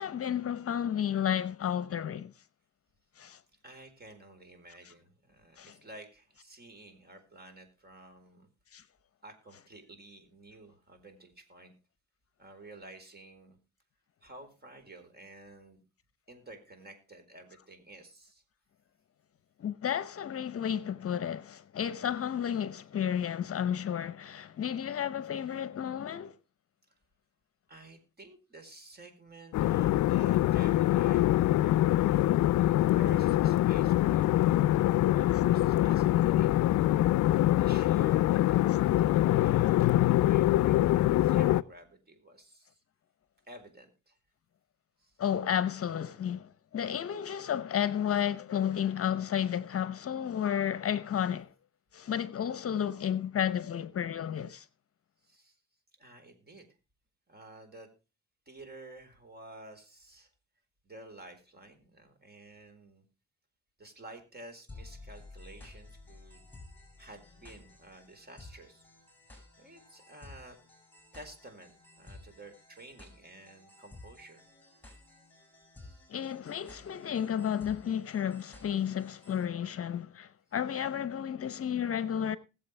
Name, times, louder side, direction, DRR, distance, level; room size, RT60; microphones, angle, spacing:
voice 1, 0.0-2.3 3.2-3.4 5.6-5.8 8.7-8.8 19.6-26.4 45.2-51.5 51.9-54.7 76.1-82.4, left 9 dB, 50° left, 0.8 m, -32 dB
voice 2, 3.6-8.5 9.2-11.7 12.4-13.6 14.2-15.8 16.3-18.4 27.7-34.3 35.1-36.6 37.5-42.8 43.5-44.2 45.0-45.1 55.2-55.6 56.0-56.7 57.3-57.9 58.5-60.3 60.8-63.0 63.8-66.4 67.0-68.8 69.6-70.6 71.1-74.4 75.8-76.0 80.7-80.8, right 2 dB, 30° right, 4.3 m, -51 dB
sound 1, 29.5-41.6, left 15 dB, 75° left, 0.5 m, -24 dB
sound 2, 64.7-79.4, left 2 dB, 5° left, 6.5 m, -53 dB
20.5 x 7.7 x 3.3 m
cardioid pair, 90°, 30 cm